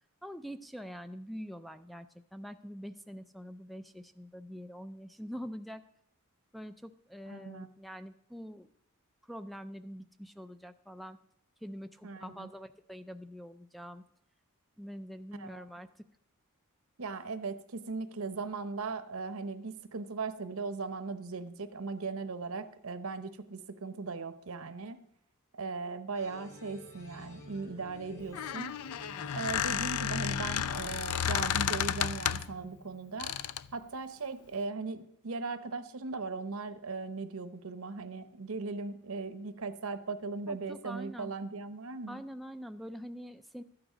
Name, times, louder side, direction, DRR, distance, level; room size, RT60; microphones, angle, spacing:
voice 1, 0.2-2.1 2.3-5.8 6.5-8.7 9.2-11.2 11.6-14.0 14.8-16.0 40.5-41.3 42.1-43.6, equal, ahead, 10 dB, 0.3 m, -44 dB
voice 2, 7.3-7.7 12.0-12.5 15.3-15.6 17.0-25.0 25.5-28.8 29.3-33.3 33.7-42.2, right 4 dB, 70° right, 11 dB, 0.9 m, -38 dB
sound 1, 26.1-33.1, left 2 dB, 50° left, 3.0 m, -50 dB
Squeak, 28.2-32.6 33.2-33.7, left 9 dB, 85° left, 0.4 m, -32 dB
13.0 x 8.9 x 5.0 m, 0.73 s
head